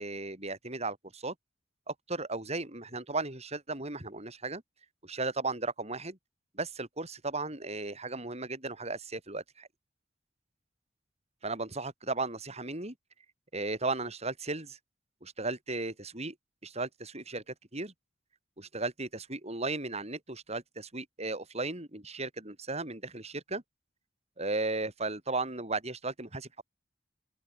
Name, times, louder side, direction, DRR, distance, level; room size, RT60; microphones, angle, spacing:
voice 1, 0.0-1.3 1.9-4.6 5.0-6.2 6.5-9.7 11.4-12.9 13.5-14.8 15.2-16.3 16.6-17.9 18.6-23.6 24.4-26.6, right 3 dB, 35° right, 7.9 m, -35 dB
open air
head